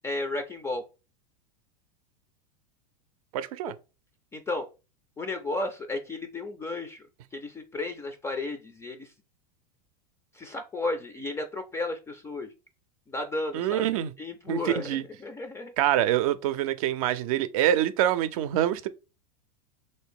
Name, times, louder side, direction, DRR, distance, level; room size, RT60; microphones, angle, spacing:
voice 1, 0.0-0.8 4.3-4.7 5.2-7.0 7.3-9.1 10.3-12.5 13.1-13.8 14.2-15.7, left 2 dB, 15° left, 0.4 m, -33 dB
voice 2, 3.3-3.7 13.5-14.1 14.5-15.0 15.8-18.9, right 12 dB, 70° right, 0.5 m, -25 dB
3.2 x 2.6 x 3.5 m
supercardioid pair, 120°, 19 cm